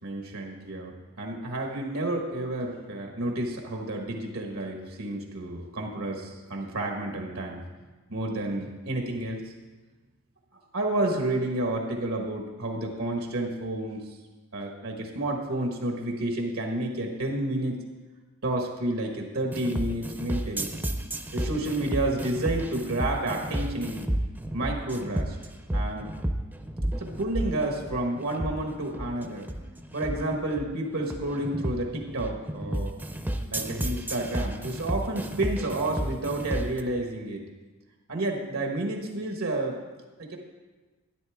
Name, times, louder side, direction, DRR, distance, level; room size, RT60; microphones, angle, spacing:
voice 1, 0.0-7.7 8.1-9.4 10.7-14.1 14.5-17.8 18.4-20.7 21.3-24.1 24.5-25.4 25.7-26.1 27.0-29.5 29.9-32.9 33.5-37.4 38.1-39.8 40.2-40.4, right 1 dB, 80° right, 2 dB, 1.4 m, -30 dB
sound 1, 19.5-36.8, right 1 dB, 10° right, 0.6 m, -32 dB
12.0 x 10.0 x 3.5 m, 1.2 s
head